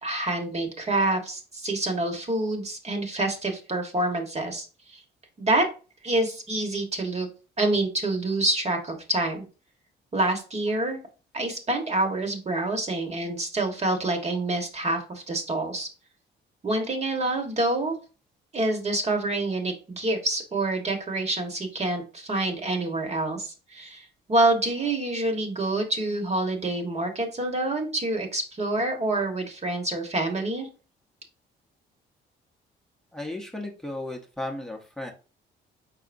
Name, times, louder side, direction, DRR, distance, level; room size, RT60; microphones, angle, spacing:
voice 1, 0.0-5.0 5.4-5.7 6.0-7.3 7.6-9.4 10.1-11.0 11.3-15.9 16.6-17.9 18.5-30.7, right 2 dB, 35° right, 4 dB, 1.4 m, -27 dB
voice 2, 33.1-35.1, left 1 dB, 5° left, 1 dB, 0.8 m, -35 dB
4.9 x 4.1 x 2.6 m, 0.34 s
cardioid pair, 90°, 20 cm